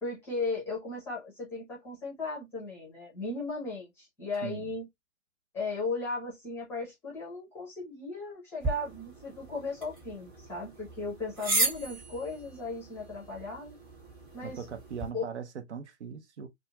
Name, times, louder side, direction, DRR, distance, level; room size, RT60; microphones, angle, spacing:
voice 1, 0.0-4.9 5.5-13.8 14.3-14.6 15.1-15.2, left 3 dB, 5° left, 0.7 m, -36 dB
voice 2, 4.4-4.7 14.4-16.5, right 6 dB, 65° right, 0.7 m, -40 dB
sound 1, 8.6-15.1, right 2 dB, 15° right, 1.1 m, -36 dB
2.6 x 2.3 x 2.8 m
hypercardioid pair, 145°, 37 cm